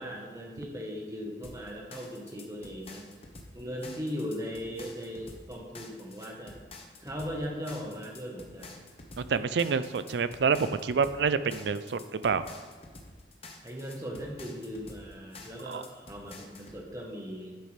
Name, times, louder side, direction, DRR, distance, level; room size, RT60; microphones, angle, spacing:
voice 1, 0.0-3.1 3.5-6.6 7.0-8.9 13.6-17.6, equal, 20° right, 0 dB, 1.2 m, -38 dB
sound 1, 1.4-16.8, left 3 dB, 35° left, 0.8 m, -49 dB
voice 2, 9.2-12.5 15.7-15.8, right 5 dB, 75° right, 13 dB, 0.4 m, -28 dB
10.5 x 6.6 x 3.3 m, 1.5 s
head